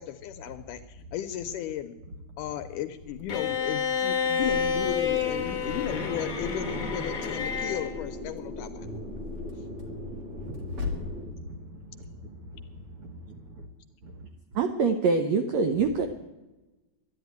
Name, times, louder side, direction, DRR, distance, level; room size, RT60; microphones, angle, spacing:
voice 1, 0.0-1.9 2.4-8.9, left 11 dB, 80° left, 9 dB, 1.9 m, -35 dB
voice 2, 0.7-1.1 2.1-2.2 2.5-2.6 5.5-6.0 8.8-13.7 14.0-14.3 15.8-15.9, equal, 55° right, 4 dB, 1.7 m, -43 dB
Bowed string instrument, 3.3-8.0, left 6 dB, 50° left, 0.9 m, -29 dB
sound 1, 4.4-11.2, left 2 dB, 15° right, 3.0 m, -38 dB
sound 2, 6.5-11.2, left 4 dB, 35° right, 2.2 m, -41 dB
voice 3, 14.5-16.1, right 4 dB, 75° right, 7 dB, 1.6 m, -24 dB
12.0 x 11.0 x 9.3 m, 1.1 s
omnidirectional pair, 4.1 m